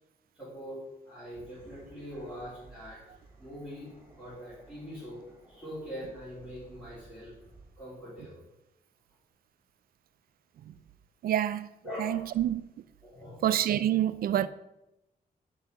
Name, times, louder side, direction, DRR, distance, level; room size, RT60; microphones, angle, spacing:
voice 1, 0.3-5.2 5.5-7.3 7.8-8.4 11.8-12.4 13.0-13.4, equal, 5° left, 3.4 m, -43 dB
sound 1, 1.2-8.0, right 2 dB, 15° right, 2.6 m, -57 dB
voice 2, 11.2-11.7 12.0-12.6 13.4-14.5, right 11 dB, 70° right, 0.4 m, -27 dB
5.7 x 5.5 x 6.9 m
wide cardioid pair, 165°, 16 cm